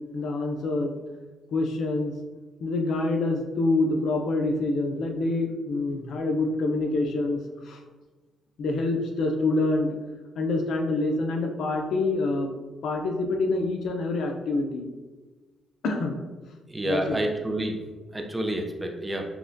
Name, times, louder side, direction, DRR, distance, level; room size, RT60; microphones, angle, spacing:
voice 1, 0.1-1.0 1.5-2.1 2.6-7.4 7.6-7.8 8.6-9.9 10.4-12.5 12.8-14.9 15.8-16.2 16.8-17.2, left 2 dB, 70° left, 3 dB, 0.5 m, -26 dB
voice 2, 16.7-17.7 18.1-19.2, right 1 dB, 10° right, 2 dB, 0.5 m, -29 dB
5.7 x 2.2 x 2.6 m, 1.3 s
cardioid pair, 90°, 0 cm